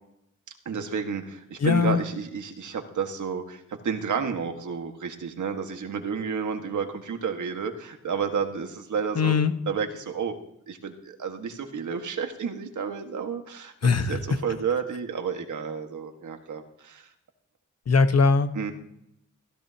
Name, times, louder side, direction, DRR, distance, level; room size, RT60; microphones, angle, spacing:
voice 1, 0.7-9.4 9.7-10.4 10.7-13.7 14.0-17.1 18.5-18.7, right 6 dB, 80° right, 5 dB, 1.7 m, -31 dB
voice 2, 1.6-2.0 9.1-9.5 13.8-14.2 17.9-18.5, left 5 dB, 55° left, 9 dB, 1.2 m, -20 dB
16.5 x 13.5 x 2.9 m, 0.74 s
cardioid pair, 70°, 30 cm